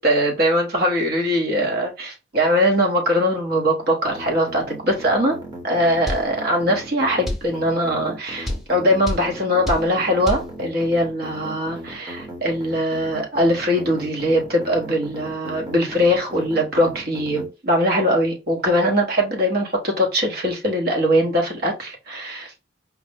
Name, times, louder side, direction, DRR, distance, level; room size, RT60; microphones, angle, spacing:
voice 1, 0.0-5.4 5.6-22.5, equal, 50° right, 1.0 m, -21 dB
sound 1, 4.1-17.5, right 1 dB, 20° right, 1.0 m, -37 dB
sound 2, 6.1-6.3 7.3-7.5 8.5-8.7 9.1-9.3 9.7-9.9 10.3-10.5, left 1 dB, ahead, 0.6 m, -25 dB
4.9 x 2.0 x 3.4 m
head